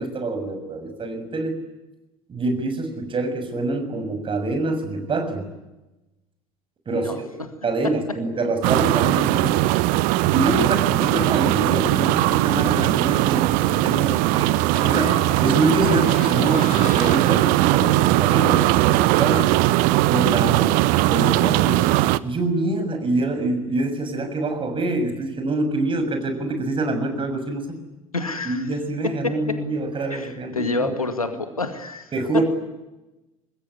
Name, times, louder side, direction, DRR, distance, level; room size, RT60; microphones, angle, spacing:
voice 1, 0.0-1.6 2.3-5.5 6.9-7.1 7.6-9.8 10.3-19.5 20.1-21.8 22.2-27.8 28.4-30.9 32.1-32.4, right 2 dB, 30° right, 7 dB, 6.7 m, -25 dB
sound 1, 8.6-22.2, right 17 dB, 55° right, 0.9 m, -19 dB
Door, 14.7-17.3 19.0-19.1 19.3-19.7, left 8 dB, 45° left, 3.9 m, -37 dB
voice 2, 28.1-28.7 29.0-29.6 30.1-32.4, left 3 dB, 85° left, 9 dB, 2.1 m, -28 dB
25.0 x 21.0 x 9.7 m, 1.0 s
figure-of-eight pair, 65°, 18 cm